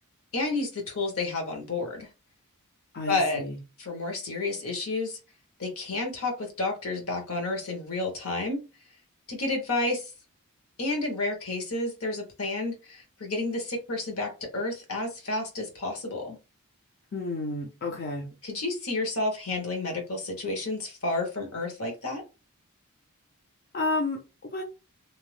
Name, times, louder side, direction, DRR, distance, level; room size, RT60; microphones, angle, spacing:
voice 1, 0.3-2.1 3.1-3.5 3.8-5.2 5.6-8.6 9.3-10.1 10.8-16.4 18.4-22.2, left 2 dB, 70° left, 2 dB, 1.1 m, -30 dB
voice 2, 2.9-3.6 17.1-18.3 23.7-24.6, left 2 dB, 45° left, 0 dB, 0.5 m, -31 dB
2.7 x 2.0 x 3.1 m, 0.29 s
head